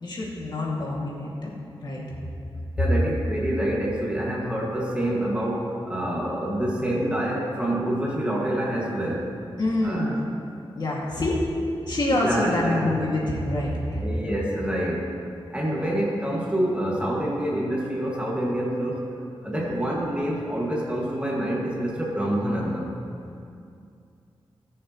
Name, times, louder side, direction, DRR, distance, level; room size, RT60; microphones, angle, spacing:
voice 1, 0.0-2.0 9.6-10.1 10.7-11.4 11.8-14.0 19.6-19.8, left 1 dB, 55° left, -5 dB, 2.2 m, -26 dB
voice 2, 2.8-9.3 9.8-10.1 12.2-13.1 14.0-15.1 15.5-19.0 19.4-22.9, right 1 dB, 15° right, -4 dB, 2.0 m, -27 dB
19.5 x 6.6 x 3.1 m, 2.5 s
wide cardioid pair, 95°, 9 cm